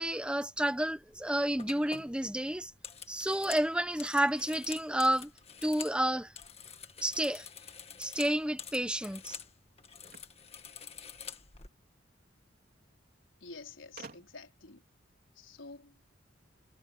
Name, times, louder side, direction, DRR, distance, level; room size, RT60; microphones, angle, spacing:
voice 1, 0.0-2.7 3.1-5.3 5.6-6.3 7.0-7.5 8.0-9.4, right 1 dB, 5° right, 1.0 m, -30 dB
sound 1, 1.0-1.2 1.6-6.0 6.3-9.5 9.8-11.7, left 7 dB, 30° left, 1.8 m, -47 dB
sound 2, 10.0-11.5 12.6-12.7 12.9-13.0 14.0-14.6, right 4 dB, 50° right, 3.5 m, -52 dB
voice 2, 13.4-14.8 15.3-16.1, left 3 dB, 85° left, 4.6 m, -49 dB
head